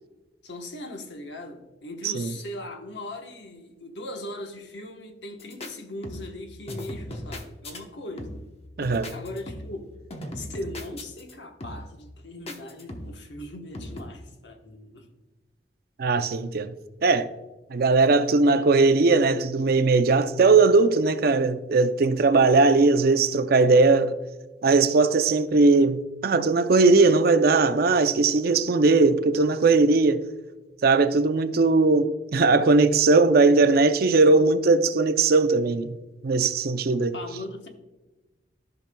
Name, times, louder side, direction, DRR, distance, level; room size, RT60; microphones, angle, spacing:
voice 1, 0.4-8.4 9.1-9.9 10.3-15.1 37.1-37.7, left 1 dB, 80° left, 1.1 m, -39 dB
sound 1, 5.4-5.7 6.0-6.4 6.7-7.8 8.2-8.6 8.8-9.8 10.1-11.3 11.6-12.0 12.5-13.3 13.7-14.0, left 1 dB, 35° left, 0.9 m, -38 dB
voice 2, 8.8-9.1 16.0-16.7 17.0-17.3 17.7-24.2 24.6-30.2 30.8-36.0 36.2-37.2, right 3 dB, 60° right, 0.5 m, -19 dB
13.5 x 5.7 x 2.2 m
head